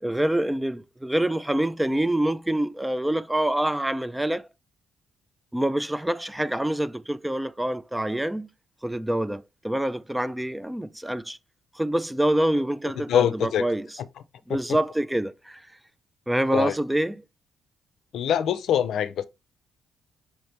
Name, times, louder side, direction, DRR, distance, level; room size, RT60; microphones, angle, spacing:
voice 1, 0.0-4.5 5.5-8.5 8.8-11.4 11.7-13.9 14.5-15.6 16.3-17.2, right 1 dB, 5° right, 0.3 m, -26 dB
voice 2, 13.1-13.7 14.0-14.1 16.5-16.8 18.1-19.2, left 9 dB, 75° left, 0.5 m, -24 dB
5.6 x 2.9 x 3.2 m
cardioid pair, 90°, 0 cm